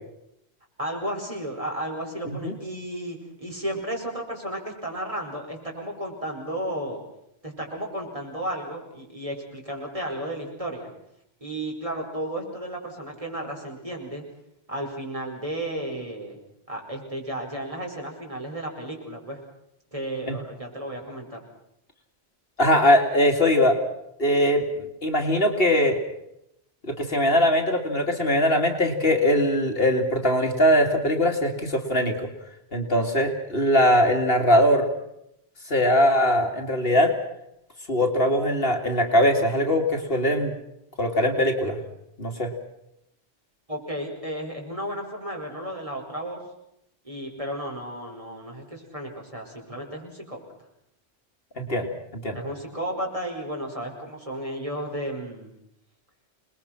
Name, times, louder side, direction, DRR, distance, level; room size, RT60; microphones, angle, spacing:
voice 1, 0.8-7.0 7.4-10.9 11.4-14.2 14.7-16.4 16.7-19.4 19.9-21.4 43.7-46.4 47.0-50.4 52.3-55.5, right 1 dB, 30° right, 0 dB, 5.2 m, -33 dB
voice 2, 22.6-23.8 24.2-26.0 26.9-32.3 32.7-34.9 35.7-37.1 37.9-40.5 41.0-41.8 42.2-42.5 51.6-52.4, equal, 60° left, 3 dB, 2.7 m, -21 dB
28.0 x 20.5 x 5.9 m, 0.79 s
omnidirectional pair, 1.1 m